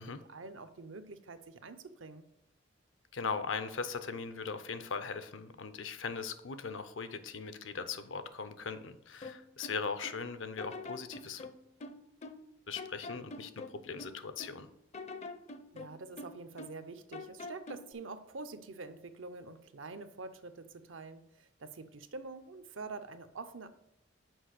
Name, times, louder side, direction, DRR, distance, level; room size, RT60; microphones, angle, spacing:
voice 1, 0.3-2.3 15.7-23.7, right 3 dB, 80° right, 10 dB, 0.7 m, -46 dB
voice 2, 3.1-11.5 12.7-14.7, left 5 dB, 75° left, 11 dB, 0.7 m, -39 dB
sound 1, 9.2-10.2 10.6-12.5 12.8-14.6 14.9-16.9 17.1-17.9, left 3 dB, 35° left, 0.5 m, -46 dB
6.3 x 5.0 x 6.4 m, 0.80 s
head